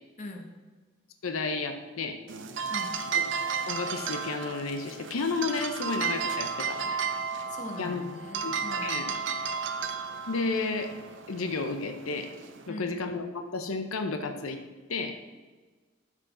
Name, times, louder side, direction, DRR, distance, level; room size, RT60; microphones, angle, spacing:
voice 1, 0.2-0.5 2.7-3.0 7.2-7.3 7.5-9.1 12.7-13.0, left 1 dB, 35° left, 3 dB, 1.0 m, -41 dB
voice 2, 1.2-2.2 3.1-3.3 3.7-7.0 7.8-8.1 8.4-9.0 10.3-10.9 11.3-12.3 12.7-14.6 14.9-15.2, left 3 dB, 90° left, 7 dB, 0.7 m, -32 dB
sound 1, 2.3-12.7, right 6 dB, 60° right, 0.6 m, -33 dB
12.5 x 5.0 x 3.9 m, 1.3 s
head